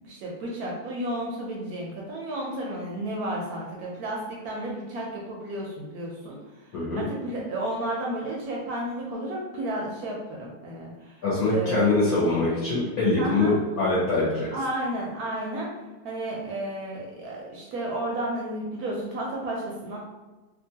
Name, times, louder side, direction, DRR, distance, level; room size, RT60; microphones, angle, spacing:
voice 1, 0.0-6.4 7.0-11.2 11.5-11.9 13.2-13.6 14.5-15.7 16.0-20.0, right 1 dB, 70° right, -3 dB, 0.9 m, -32 dB
voice 2, 11.2-14.5, left 3 dB, 65° left, -8 dB, 1.1 m, -23 dB
2.9 x 2.4 x 2.7 m, 1.2 s
omnidirectional pair, 1.9 m